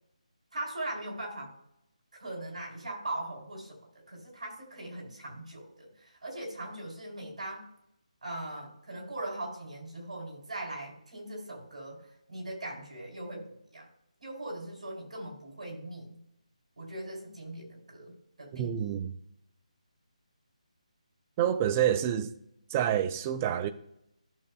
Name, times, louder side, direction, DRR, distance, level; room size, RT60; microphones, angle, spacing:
voice 1, 0.5-1.5 2.2-7.7 8.2-13.9 14.2-16.2 16.8-19.0, right 1 dB, 65° right, 3.6 m, -40 dB
voice 2, 18.5-19.1 21.4-22.3 22.7-23.7, right 10 dB, 15° right, 0.3 m, -28 dB
13.5 x 6.7 x 2.3 m
figure-of-eight pair, 170°, 4 cm